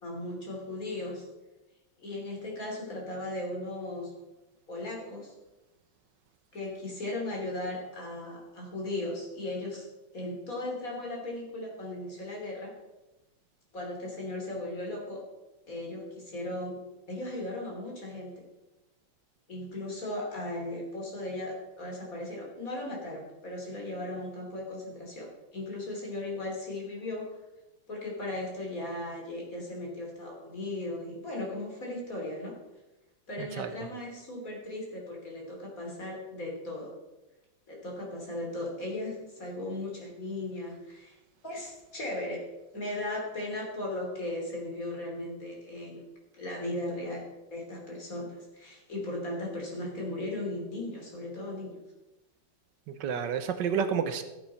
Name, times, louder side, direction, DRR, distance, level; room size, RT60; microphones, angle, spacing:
voice 1, 0.0-1.3 2.0-4.1 4.7-5.3 6.5-9.9 10.1-12.7 13.7-15.2 15.7-16.8 17.1-18.4 19.5-27.3 27.9-32.6 33.3-36.9 37.7-41.2 41.4-42.4 42.7-46.0 46.3-47.2 47.5-51.8, left 1 dB, 45° left, -1 dB, 3.6 m, -37 dB
voice 2, 33.4-33.7 52.9-54.2, right 7 dB, 75° right, 10 dB, 1.4 m, -30 dB
15.0 x 8.2 x 4.2 m, 1.0 s
omnidirectional pair, 2.0 m